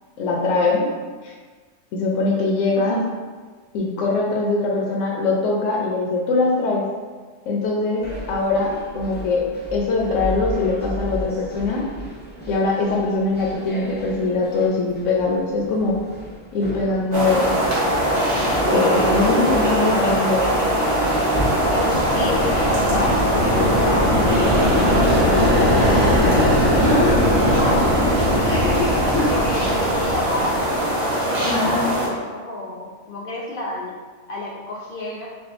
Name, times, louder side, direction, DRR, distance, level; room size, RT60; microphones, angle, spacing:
voice 1, 0.2-0.9 1.2-1.3 1.9-3.0 3.7-6.9 7.5-11.8 12.5-16.0 16.5-17.6 18.7-20.5 26.8-27.2 29.1-29.3 31.5-31.9, left 3 dB, 75° left, -2 dB, 0.9 m, -22 dB
sound 1, 8.0-24.5, equal, 15° left, 0.3 m, -33 dB
sound 2, 17.1-32.1, right 1 dB, 60° right, 1.4 m, -21 dB
sound 3, 21.1-30.9, left 1 dB, 40° right, 1.7 m, -21 dB
voice 2, 21.7-23.1 23.4-26.2 27.0-27.9 28.4-30.5 31.2-33.9 34.3-35.3, left 2 dB, 60° left, -3 dB, 0.6 m, -29 dB
6.0 x 2.3 x 2.6 m, 1.4 s
omnidirectional pair, 1.3 m